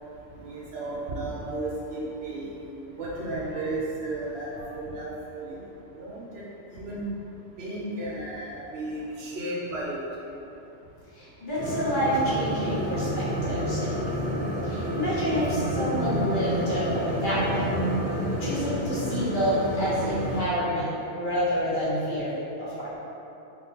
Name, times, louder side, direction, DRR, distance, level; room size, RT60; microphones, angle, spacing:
voice 1, 0.3-2.5 3.0-5.6 5.9-6.4 6.7-7.1 7.6-10.0, right 2 dB, 65° right, -5 dB, 0.8 m, -34 dB
voice 2, 11.1-14.1 14.6-17.7 18.4-22.3 22.6-23.0, equal, 45° left, -10 dB, 0.9 m, -28 dB
sound 1, 11.6-20.4, equal, 45° right, 1.0 m, -29 dB
3.5 x 2.7 x 2.8 m, 2.9 s
omnidirectional pair, 1.3 m